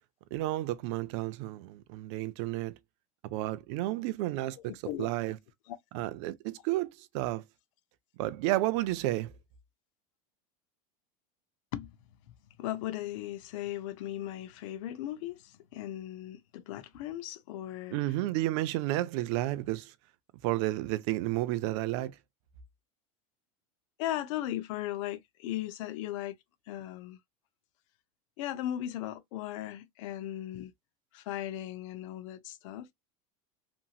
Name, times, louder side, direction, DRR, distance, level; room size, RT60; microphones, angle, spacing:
voice 1, 0.3-2.7 3.3-4.6 5.0-5.4 5.9-7.4 8.2-9.3 17.9-19.9 20.4-22.1, right 16 dB, 55° right, 0.4 m, -31 dB
voice 2, 12.6-18.0 24.0-26.3 26.7-27.2 28.4-30.7 31.1-32.9, left 13 dB, 60° left, 0.5 m, -37 dB
2.9 x 2.6 x 2.3 m
supercardioid pair, 160°, 18 cm